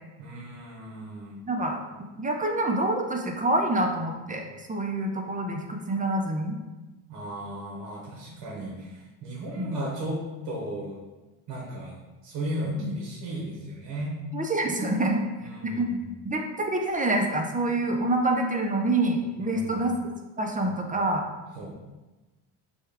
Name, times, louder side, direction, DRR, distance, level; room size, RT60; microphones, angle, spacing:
voice 1, 0.2-1.4 7.1-10.2 10.4-11.0 11.5-14.1 15.4-16.1 19.4-19.9 20.6-21.0 21.6-21.7, right 1 dB, 60° right, -3 dB, 1.2 m, -35 dB
voice 2, 1.4-1.8 2.2-6.6 9.6-9.8 12.8-13.0 14.3-15.2 15.6-15.9 16.2-19.9 20.4-21.3, right 2 dB, 15° right, 2 dB, 0.6 m, -26 dB
6.2 x 2.4 x 3.4 m, 1.1 s
supercardioid pair, 90°, 47 cm